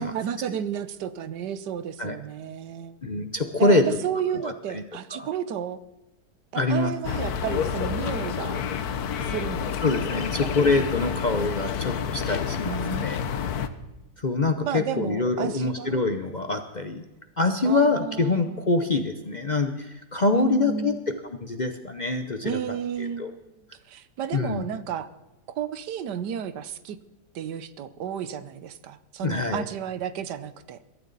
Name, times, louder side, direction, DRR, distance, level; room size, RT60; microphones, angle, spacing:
voice 1, 0.0-3.0 3.6-5.8 6.5-8.6 9.2-9.7 10.4-10.5 12.6-13.1 14.6-16.0 17.6-18.6 20.3-21.0 22.4-23.5 23.9-25.1 25.5-27.0 27.3-30.8, right 8 dB, 85° right, 14 dB, 1.4 m, -32 dB
voice 2, 3.0-4.0 4.4-4.8 5.1-5.3 6.5-6.9 9.8-13.2 14.2-17.0 17.4-20.9 21.4-22.6 23.2-23.3 24.3-24.6 29.2-29.6, left 3 dB, 40° left, 7 dB, 0.7 m, -25 dB
sound 1, 7.0-13.7, left 7 dB, 65° left, 1.3 m, -29 dB
22.0 x 13.0 x 4.0 m, 1.0 s
omnidirectional pair, 1.8 m